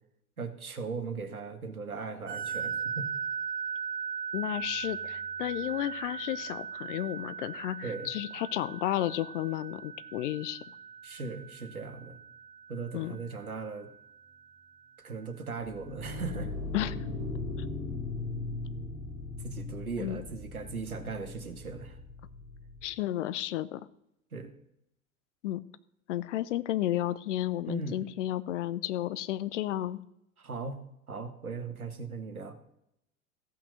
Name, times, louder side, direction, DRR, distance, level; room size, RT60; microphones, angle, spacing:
voice 1, 0.4-3.1 7.8-8.1 11.0-12.2 12.7-13.9 15.0-16.5 19.4-22.0 24.3-24.5 27.6-28.1 30.4-30.8 31.1-32.5, right 4 dB, 85° right, 8 dB, 1.4 m, -38 dB
sound 1, 2.3-14.5, right 6 dB, 25° right, 2.1 m, -39 dB
voice 2, 4.3-10.6 12.9-13.2 16.7-17.0 20.0-20.2 22.8-23.8 25.4-25.6 26.1-30.0, left 13 dB, 55° left, 16 dB, 0.7 m, -32 dB
sound 2, 15.7-22.9, left 3 dB, 85° left, 3.5 m, -38 dB
14.5 x 6.1 x 6.5 m, 0.79 s
figure-of-eight pair, 80°, 42 cm